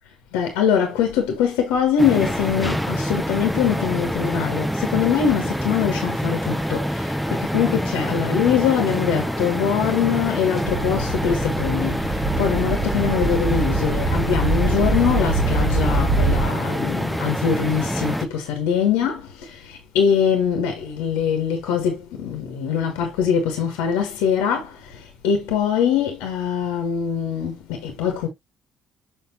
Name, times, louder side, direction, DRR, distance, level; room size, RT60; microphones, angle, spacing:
voice 1, 0.3-28.3, left 7 dB, 65° left, 1.3 m, -23 dB
sound 1, 2.0-18.3, equal, ahead, 0.8 m, -26 dB
sound 2, 10.6-16.5, right 3 dB, 40° right, 1.8 m, -24 dB
6.9 x 5.1 x 2.7 m
figure-of-eight pair, 45°, 2 cm